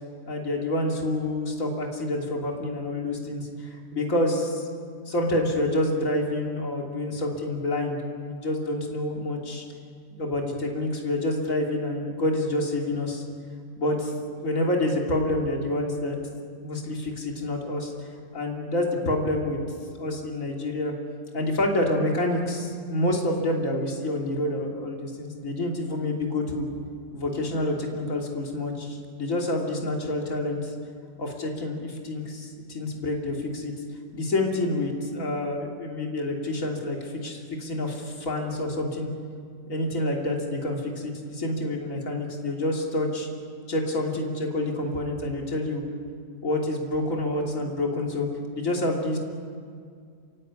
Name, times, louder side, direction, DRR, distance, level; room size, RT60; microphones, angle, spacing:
voice 1, 0.3-4.7 5.0-9.6 10.2-13.2 13.8-14.1 14.4-16.2 16.6-18.1 18.3-19.6 20.0-20.9 21.3-26.7 27.1-30.7 31.2-33.7 34.1-39.1 39.7-43.3 43.7-45.8 46.4-49.2, left 1 dB, 55° left, 0 dB, 3.2 m, -28 dB
28.5 x 15.5 x 9.7 m, 2.2 s
omnidirectional pair, 1.7 m